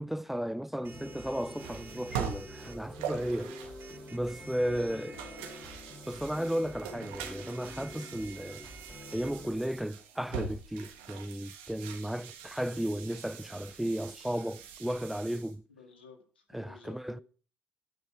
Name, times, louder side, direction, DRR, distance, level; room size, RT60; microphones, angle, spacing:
voice 1, 0.0-3.6 4.1-5.1 6.1-8.6 9.1-15.6 16.5-17.2, equal, 5° right, 0.4 m, -34 dB
sound 1, 0.8-2.8 3.8-9.3, right 6 dB, 35° right, 1.1 m, -53 dB
sound 2, 0.8-15.5, right 7 dB, 70° right, 1.7 m, -44 dB
sound 3, 0.9-9.5, left 1 dB, 15° left, 3.7 m, -48 dB
voice 2, 4.6-5.4 15.7-17.2, left 5 dB, 85° left, 1.9 m, -55 dB
18.0 x 6.1 x 4.6 m
figure-of-eight pair, 55°, 5 cm